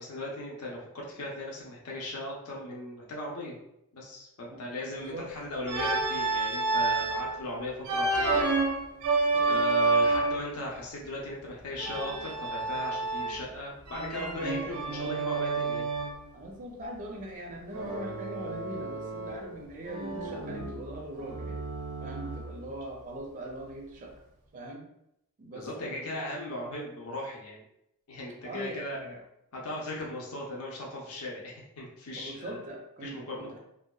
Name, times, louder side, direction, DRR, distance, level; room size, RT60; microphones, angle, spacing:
voice 1, 0.0-3.6 3.9-8.4 9.5-15.9 25.5-27.6 28.1-29.0 29.5-32.6 33.0-33.5, left 1 dB, 70° left, -2 dB, 0.6 m, -38 dB
voice 2, 4.9-5.3 9.3-9.6 14.6-15.1 16.3-21.6 22.0-24.1 24.5-24.9 25.4-26.1 28.4-29.2 32.2-33.6, right 1 dB, 35° right, 0 dB, 0.4 m, -41 dB
Organ, 5.7-7.3 7.8-10.5 11.8-13.5 13.9-16.2 17.7-19.5 19.8-22.6, right 3 dB, 90° right, 0.6 m, -29 dB
2.7 x 2.2 x 2.2 m, 0.80 s
head